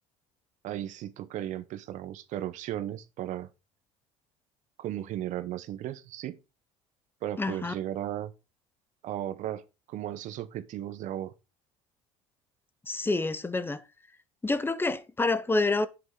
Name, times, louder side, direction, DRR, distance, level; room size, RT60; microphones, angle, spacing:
voice 1, 0.6-3.5 4.8-6.4 7.2-8.3 9.0-11.3, right 12 dB, 55° right, 0.9 m, -35 dB
voice 2, 7.4-7.7 12.9-13.8 14.4-15.9, left 3 dB, 15° left, 0.9 m, -27 dB
8.1 x 8.0 x 3.8 m
supercardioid pair, 100°, 15 cm